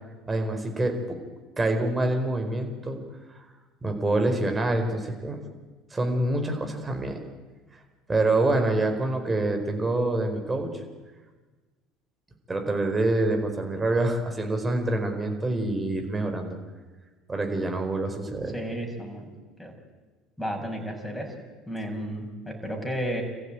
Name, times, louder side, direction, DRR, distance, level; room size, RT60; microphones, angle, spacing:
voice 1, 0.3-1.2 1.6-3.0 3.3-3.4 3.8-5.4 5.9-7.2 8.1-10.7 12.5-16.6 17.3-18.5, right 2 dB, 20° right, 4 dB, 4.8 m, -26 dB
voice 2, 18.5-19.3 19.6-19.8 20.4-21.4 21.7-23.2, equal, 5° left, 1 dB, 6.9 m, -33 dB
26.5 x 15.0 x 9.3 m, 1.3 s
hypercardioid pair, 65°, 0 cm